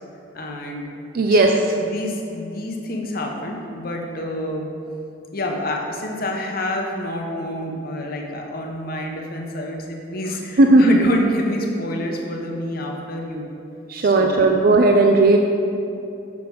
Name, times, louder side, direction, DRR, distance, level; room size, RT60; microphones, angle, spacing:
voice 1, 0.3-0.8 1.3-1.5 1.8-4.7 5.3-13.5 14.0-14.6, left 1 dB, 50° left, 1 dB, 0.9 m, -28 dB
voice 2, 1.1-1.5 10.6-11.0 13.9-15.4, right 2 dB, 50° right, 3 dB, 0.4 m, -15 dB
7.1 x 5.9 x 4.7 m, 2.7 s
head